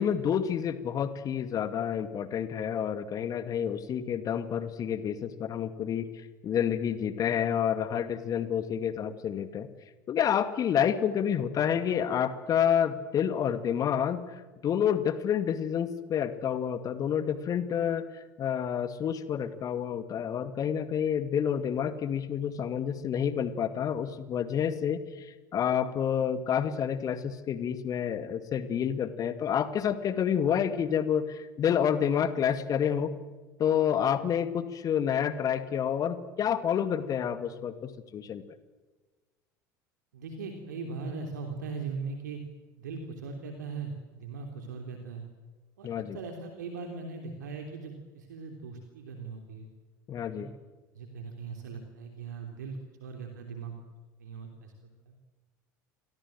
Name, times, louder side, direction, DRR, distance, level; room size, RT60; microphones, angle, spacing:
voice 1, 0.0-9.7 10.1-33.1 33.6-38.4 45.8-46.2 50.1-50.5, left 8 dB, 35° left, 12 dB, 2.3 m, -29 dB
voice 2, 40.1-42.4 42.8-45.2 45.8-49.6 50.3-50.5 50.9-53.7 54.2-54.7 55.1-55.2, right 4 dB, 70° right, 4 dB, 3.3 m, -39 dB
29.5 x 24.0 x 7.7 m, 1.3 s
figure-of-eight pair, 70°, 10 cm